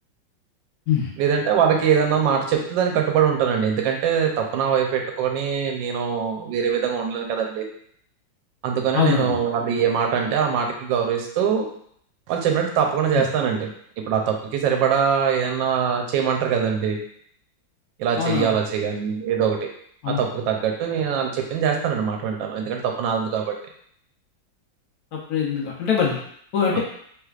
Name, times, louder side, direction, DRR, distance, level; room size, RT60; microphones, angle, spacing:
voice 1, 1.2-7.6 8.6-11.7 12.3-13.7 14.1-17.0 18.0-19.7 20.1-23.5 26.7-26.8, right 7 dB, 75° right, 2 dB, 1.3 m, -22 dB
voice 2, 8.9-9.4 13.1-13.2 18.2-18.5 20.0-20.2 25.1-26.2 26.5-26.8, left 7 dB, 70° left, -2 dB, 0.9 m, -22 dB
3.3 x 3.1 x 2.3 m, 0.65 s
omnidirectional pair, 2.1 m